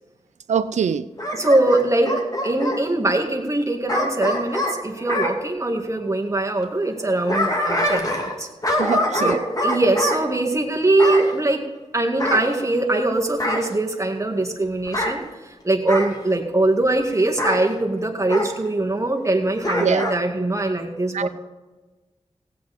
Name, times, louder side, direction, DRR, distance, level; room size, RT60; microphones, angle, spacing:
voice 1, 0.5-1.1 8.8-9.4 19.8-20.1 21.1-21.3, right 7 dB, 90° right, 14 dB, 0.5 m, -23 dB
Bark / Growling, 1.2-2.8 3.9-5.3 7.0-8.4 8.6-10.2 11.0-11.3 12.2-13.0 13.4-13.7 14.8-15.2 15.9-16.2 17.4-17.6 18.3-18.5 19.6-20.2 20.6-20.7, left 1 dB, 30° left, 2.3 m, -24 dB
voice 2, 1.3-2.1 2.4-8.5 9.1-11.6 11.9-15.2 15.6-21.3, right 2 dB, 25° right, 1 dB, 2.0 m, -22 dB
16.5 x 8.5 x 4.3 m, 1.2 s
cardioid pair, 50°, 12 cm